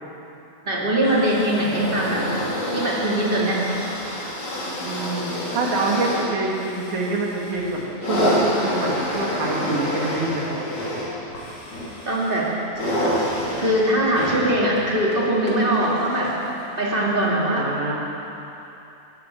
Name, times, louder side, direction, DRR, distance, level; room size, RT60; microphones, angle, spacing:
voice 1, 0.6-2.3 2.7-3.7 12.1-12.5 13.6-16.4 16.8-17.7, right 1 dB, 20° right, -5 dB, 2.3 m, -21 dB
sound 1, 1.0-16.4 17.3-17.4, equal, 50° left, 3.3 m, -28 dB
voice 2, 4.8-10.6 17.5-17.9, right 2 dB, 80° right, -2 dB, 3.4 m, -26 dB
18.0 x 15.0 x 4.5 m, 2.9 s
omnidirectional pair, 3.4 m